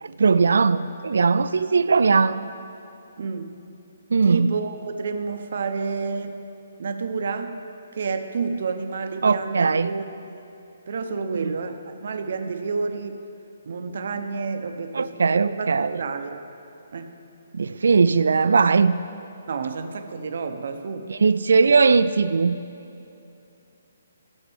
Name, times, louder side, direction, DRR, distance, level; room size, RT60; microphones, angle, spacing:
voice 1, 0.0-2.5 4.1-4.5 9.2-9.9 11.4-11.5 14.9-15.9 17.5-19.0 21.1-22.6, right 4 dB, 75° right, 13 dB, 0.3 m, -19 dB
voice 2, 3.2-3.6 4.3-6.4 6.8-7.6 7.9-10.5 10.9-13.2 13.7-16.4 16.9-17.1 19.5-21.1, right 4 dB, 50° right, 7 dB, 0.6 m, -30 dB
14.5 x 7.2 x 3.4 m, 2.7 s
hypercardioid pair, 175°, 0 cm